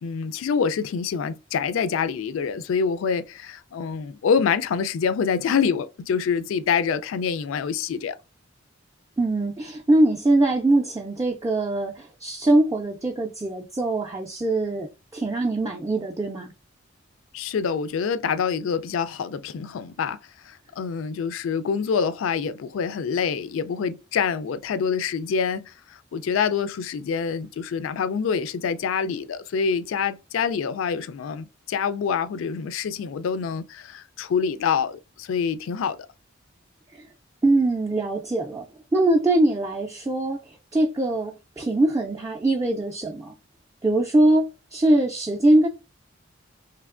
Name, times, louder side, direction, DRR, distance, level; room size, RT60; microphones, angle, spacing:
voice 1, 0.0-8.2 17.3-20.2 20.5-25.7 26.1-36.0, left 6 dB, 85° left, 0.3 m, -26 dB
voice 2, 9.2-16.5 36.9-37.0 37.4-38.7 38.9-40.4 40.7-43.3 43.8-45.7, right 2 dB, 15° right, 0.4 m, -22 dB
3.2 x 2.9 x 2.4 m
head